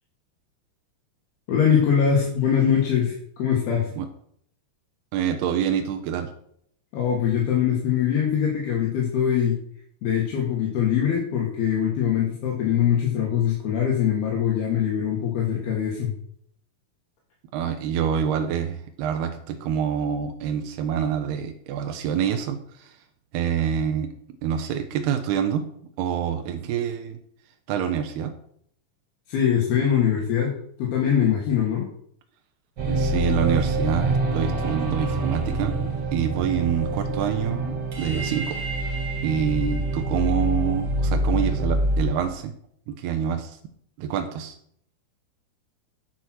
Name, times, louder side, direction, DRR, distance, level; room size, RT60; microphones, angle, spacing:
voice 1, 1.5-3.9 6.9-9.6 10.0-16.1 29.3-31.9, left 8 dB, 75° left, -2 dB, 3.5 m, -22 dB
voice 2, 5.1-6.3 17.5-23.0 23.3-24.1 24.4-25.7 26.0-27.2 27.7-28.3 32.9-35.8 36.1-38.6 39.2-42.5 42.9-43.6 44.0-44.6, right 8 dB, 80° right, 5 dB, 2.9 m, -26 dB
sound 1, 32.8-42.0, right 1 dB, 45° right, 1.6 m, -26 dB
9.8 x 6.1 x 6.2 m, 0.66 s
omnidirectional pair, 4.6 m